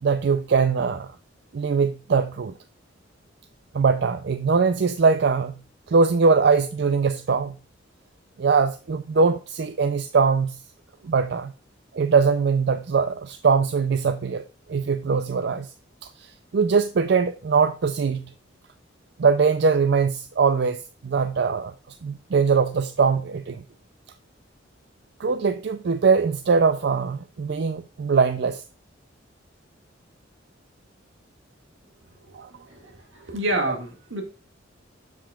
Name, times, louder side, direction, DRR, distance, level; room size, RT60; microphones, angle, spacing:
voice 1, 0.0-1.1 1.5-2.5 3.7-5.5 5.9-7.6 8.4-10.6 11.0-11.5 11.9-14.4 14.7-15.7 16.2-18.3 19.2-21.7 22.0-23.6 25.2-28.6 32.3-32.5, right 5 dB, 60° right, 0.4 m, -21 dB
voice 2, 32.3-34.2, right 1 dB, 80° right, 1.9 m, -29 dB
7.3 x 7.1 x 2.3 m
head